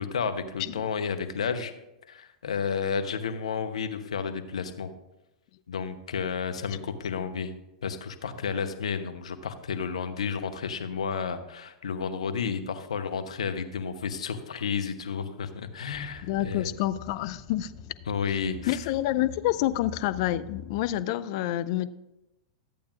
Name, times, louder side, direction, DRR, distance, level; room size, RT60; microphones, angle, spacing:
voice 1, 0.0-1.7 2.1-4.9 5.7-7.5 7.8-16.7 18.1-18.8, left 6 dB, 80° left, 0.9 m, -31 dB
sound 1, 15.9-21.0, left 7 dB, 30° left, 1.0 m, -46 dB
voice 2, 16.2-17.7 18.7-21.9, left 14 dB, 55° left, 0.5 m, -28 dB
13.5 x 8.5 x 2.5 m
hypercardioid pair, 105°, 3 cm